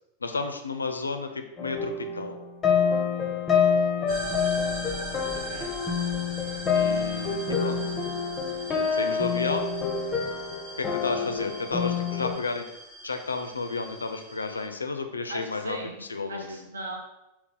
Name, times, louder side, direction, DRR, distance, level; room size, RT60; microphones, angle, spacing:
voice 1, 0.2-2.4 6.7-8.0 8.9-9.7 10.8-12.6 13.0-15.8 16.1-16.6, left 3 dB, 80° left, 6 dB, 0.3 m, -32 dB
sound 1, 1.6-12.4, left 6 dB, 20° left, 0.6 m, -27 dB
sound 2, 4.1-14.7, right 2 dB, 50° right, 1.1 m, -40 dB
voice 2, 5.3-5.7 15.3-17.0, right 1 dB, 75° right, 1 dB, 0.7 m, -38 dB
3.9 x 2.3 x 3.8 m, 0.91 s
figure-of-eight pair, 90°, 0 cm